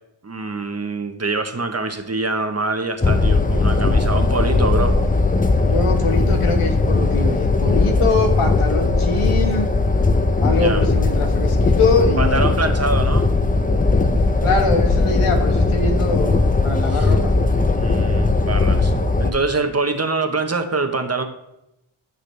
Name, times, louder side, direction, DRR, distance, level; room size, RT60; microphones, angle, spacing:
voice 1, 0.2-5.0 10.5-10.8 12.2-13.3 16.9-17.1 17.7-18.9 19.2-21.2, right 3 dB, 30° right, 6 dB, 1.0 m, -24 dB
sound 1, 3.0-19.3, left 3 dB, 15° left, 0.7 m, -18 dB
voice 2, 5.6-9.7 10.4-12.4 14.4-17.3 18.0-18.1, left 3 dB, 85° left, 3 dB, 1.6 m, -23 dB
12.0 x 6.1 x 3.3 m, 0.87 s
wide cardioid pair, 95°, 50 cm